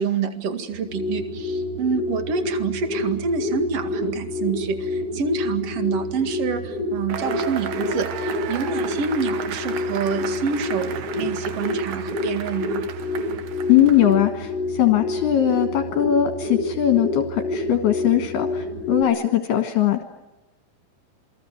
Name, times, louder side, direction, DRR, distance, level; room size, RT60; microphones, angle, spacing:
voice 1, 0.0-12.8, right 5 dB, 45° right, 7 dB, 2.1 m, -27 dB
sound 1, 0.7-19.0, left 2 dB, 30° right, 4.7 m, -28 dB
Cheering / Applause / Crowd, 7.1-14.3, right 9 dB, 65° right, 2.8 m, -35 dB
voice 2, 13.7-20.0, left 11 dB, 70° left, 6 dB, 3.0 m, -20 dB
28.0 x 21.5 x 9.2 m, 1.1 s
omnidirectional pair, 5.4 m